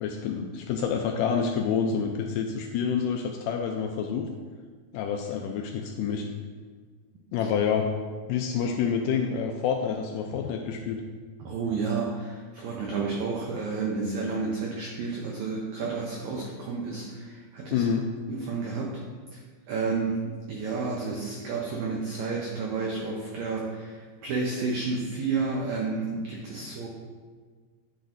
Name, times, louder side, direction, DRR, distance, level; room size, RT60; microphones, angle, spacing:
voice 1, 0.0-4.3 4.9-6.3 7.3-7.9 8.3-11.0 17.7-18.0 26.6-26.7, left 6 dB, 85° left, 2 dB, 1.9 m, -28 dB
voice 2, 11.4-17.8 18.3-19.0 19.3-20.2 20.5-26.9, right 4 dB, 80° right, -1 dB, 1.6 m, -31 dB
9.9 x 6.2 x 2.6 m, 1.5 s
omnidirectional pair, 4.3 m